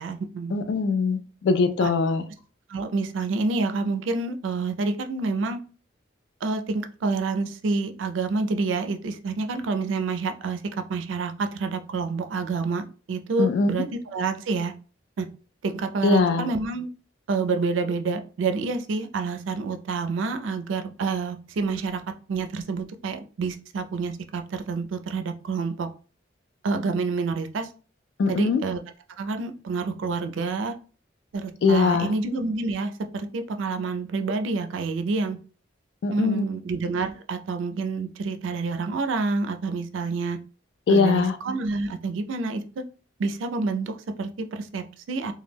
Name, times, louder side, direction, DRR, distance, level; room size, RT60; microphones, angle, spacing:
voice 1, 0.0-0.6 1.8-1.9 2.7-5.6 6.4-10.6 10.9-14.7 15.2-15.3 15.6-16.9 17.3-22.0 22.3-25.9 26.6-27.7 28.3-28.8 29.2-30.7 31.3-35.4 36.1-40.4 40.9-42.8 43.2-45.3, right 4 dB, 80° right, 8 dB, 0.4 m, -28 dB
voice 2, 0.5-2.2 13.4-13.9 16.0-16.5 28.2-28.6 31.6-32.1 36.0-36.5 40.9-41.4, left 4 dB, 65° left, 10 dB, 0.3 m, -21 dB
2.2 x 2.1 x 3.2 m, 0.38 s
head